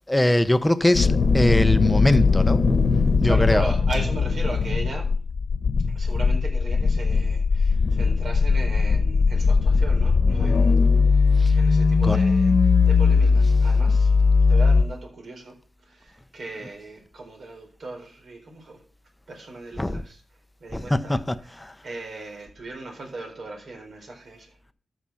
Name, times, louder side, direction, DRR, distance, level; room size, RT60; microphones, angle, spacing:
voice 1, 0.1-2.6 3.2-3.7 11.4-11.5 12.0-12.2 19.8-20.0 20.7-21.4 21.6-21.7, left 1 dB, 10° left, 0.9 m, -22 dB
sound 1, 0.9-14.8, left 4 dB, 60° left, 1.2 m, -19 dB
voice 2, 3.2-5.2 5.9-14.1 14.5-15.6 15.8-18.8 19.3-20.2 20.6-21.5 21.8-24.7, right 2 dB, 65° right, 4.1 m, -37 dB
13.0 x 6.1 x 5.7 m
cardioid pair, 75°, 0 cm